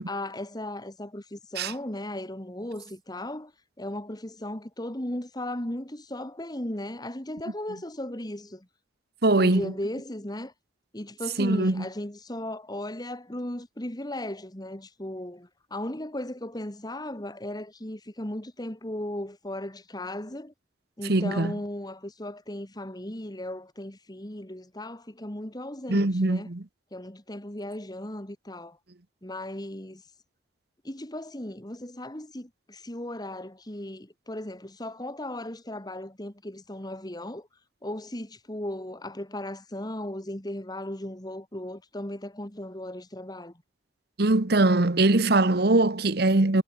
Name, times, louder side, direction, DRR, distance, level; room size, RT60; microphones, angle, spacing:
voice 1, 0.1-3.5 3.8-8.7 9.3-10.5 10.9-20.5 21.0-26.5 26.9-28.8 29.2-30.0 30.8-37.5 37.8-43.6, left 1 dB, 20° left, 2.2 m, -36 dB
voice 2, 9.2-9.7 11.4-11.8 21.1-21.5 25.9-26.6 44.2-46.6, right 2 dB, 60° right, 1.2 m, -22 dB
head